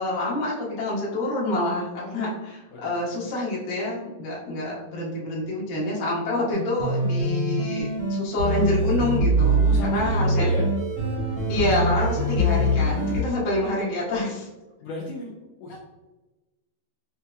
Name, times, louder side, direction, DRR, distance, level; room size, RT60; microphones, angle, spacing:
voice 1, 0.0-10.5 11.5-14.4, left 1 dB, 55° left, -6 dB, 1.2 m, -27 dB
sound 1, 6.5-13.2, right 1 dB, 60° right, 0.9 m, -23 dB
voice 2, 9.6-10.7 14.2-14.3 14.8-15.3 15.6-15.8, left 2 dB, 85° left, -3 dB, 1.5 m, -34 dB
5.9 x 2.8 x 2.3 m, 1.1 s
omnidirectional pair, 3.7 m